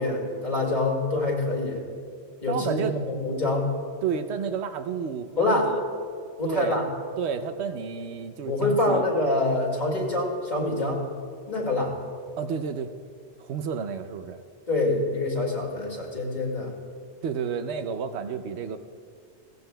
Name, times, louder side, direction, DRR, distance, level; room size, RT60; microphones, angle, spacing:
voice 1, 0.0-1.8 2.4-3.7 5.4-5.7 6.4-6.9 8.4-11.0 11.5-12.0 14.7-16.7, left 2 dB, 40° left, -2 dB, 2.3 m, -25 dB
voice 2, 2.5-3.0 4.0-5.8 6.4-6.8 7.2-9.0 12.4-12.9 13.4-14.4 17.2-18.8, right 6 dB, 75° right, 9 dB, 0.9 m, -31 dB
17.5 x 15.0 x 2.3 m, 2.2 s
omnidirectional pair, 1.1 m